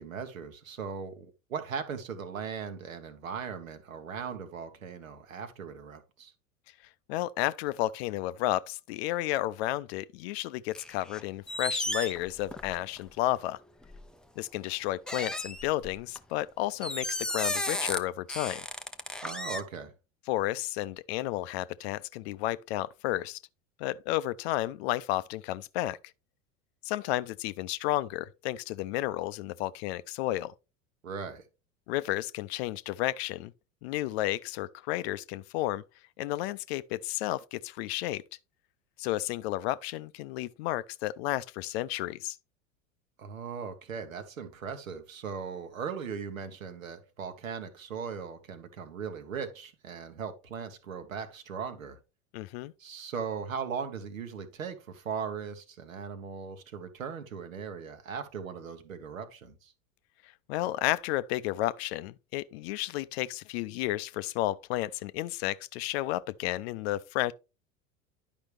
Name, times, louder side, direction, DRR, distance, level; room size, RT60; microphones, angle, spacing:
voice 1, 0.0-6.3 19.2-19.9 31.0-31.4 43.2-52.0 52.8-59.7, right 6 dB, 80° right, 1.3 m, -38 dB
voice 2, 7.1-13.6 14.4-18.7 20.3-23.4 23.8-26.0 26.8-30.5 31.9-33.5 33.8-35.8 36.2-38.2 39.0-42.4 52.3-52.7 60.5-67.3, left 16 dB, 55° left, 0.5 m, -32 dB
sound 1, 10.7-11.2 11.5-13.0 13.8-14.0 15.1-16.2 16.8-18.0 18.3-19.6, left 1 dB, ahead, 0.4 m, -34 dB
10.0 x 5.3 x 3.3 m
figure-of-eight pair, 80°, 40 cm